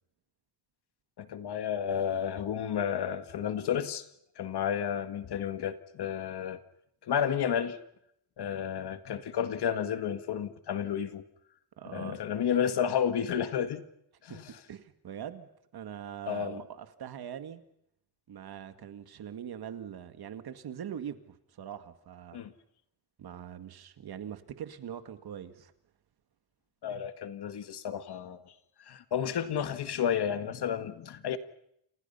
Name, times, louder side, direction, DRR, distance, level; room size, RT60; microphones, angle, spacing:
voice 1, 1.2-4.0 4.4-6.6 7.0-7.8 8.4-11.2 11.9-13.8 14.2-14.4 16.3-16.6 22.3-22.5 26.8-28.4 28.9-31.4, left 8 dB, 75° left, 10 dB, 2.0 m, -31 dB
voice 2, 11.8-12.2 14.3-17.6 18.3-22.4 23.2-25.7, right 9 dB, 70° right, 9 dB, 2.1 m, -42 dB
30.0 x 28.0 x 5.7 m, 0.76 s
wide cardioid pair, 175°, 39 cm